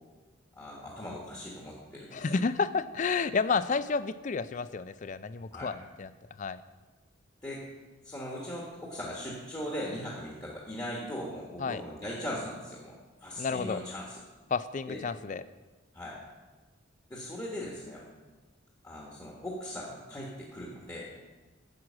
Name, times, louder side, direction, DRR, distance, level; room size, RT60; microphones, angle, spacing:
voice 1, 0.5-2.4 5.5-5.8 7.4-7.7 8.0-14.2 14.9-15.0 15.9-16.2 17.1-18.0 18.8-21.1, left 1 dB, 20° left, -4 dB, 1.3 m, -39 dB
voice 2, 2.1-6.1 6.4-6.6 11.6-11.8 13.4-13.8 14.5-15.4, left 5 dB, 40° left, 15 dB, 0.3 m, -31 dB
9.5 x 6.2 x 7.3 m, 1.3 s
head